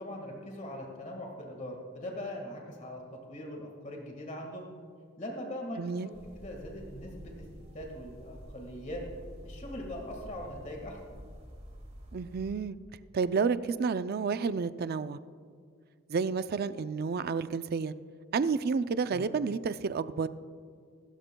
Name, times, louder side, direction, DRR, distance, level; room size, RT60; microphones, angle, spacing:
voice 1, 0.0-3.0 3.3-4.7 5.2-7.3 7.7-9.0 9.4-11.2 19.1-19.3, left 1 dB, 40° left, 1 dB, 1.7 m, -41 dB
voice 2, 5.8-6.1 12.1-12.8 13.1-15.2 16.1-17.9 18.3-20.3, right 5 dB, 50° right, 13 dB, 0.4 m, -30 dB
sound 1, 6.1-12.5, equal, 35° right, 1.9 m, -48 dB
24.5 x 13.0 x 2.3 m, 2.2 s
head